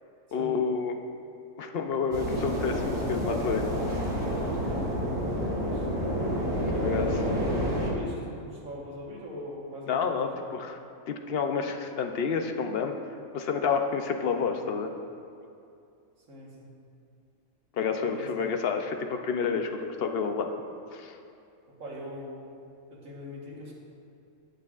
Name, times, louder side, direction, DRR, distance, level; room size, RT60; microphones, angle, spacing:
voice 1, 0.3-0.9 1.6-3.6 6.7-7.2 9.9-10.8 11.1-12.9 13.3-14.9 17.7-20.5 20.9-21.2, left 6 dB, 60° left, 5 dB, 0.7 m, -29 dB
sound 1, 2.1-7.9, equal, 40° right, 1.8 m, -29 dB
voice 2, 5.4-5.9 7.1-10.5 16.3-16.7 18.0-18.3 21.7-22.4 22.9-23.7, equal, 85° right, -4 dB, 1.9 m, -42 dB
17.5 x 6.6 x 2.4 m, 2.6 s
omnidirectional pair, 1.4 m